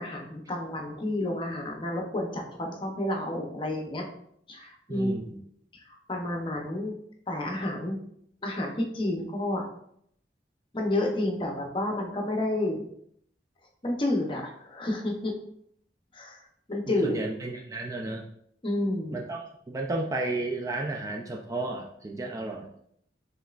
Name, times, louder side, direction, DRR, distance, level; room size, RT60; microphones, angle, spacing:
voice 1, 0.0-4.1 4.5-5.4 5.9-6.9 7.3-8.0 8.4-9.6 10.7-12.8 13.8-15.3 16.1-16.4 16.7-17.1 18.6-19.2, left 1 dB, 30° left, 1 dB, 0.7 m, -30 dB
voice 2, 4.9-5.3 16.9-18.3 19.1-19.4 19.7-22.7, right 2 dB, 20° right, 1 dB, 0.3 m, -32 dB
5.1 x 3.2 x 2.4 m, 0.71 s
head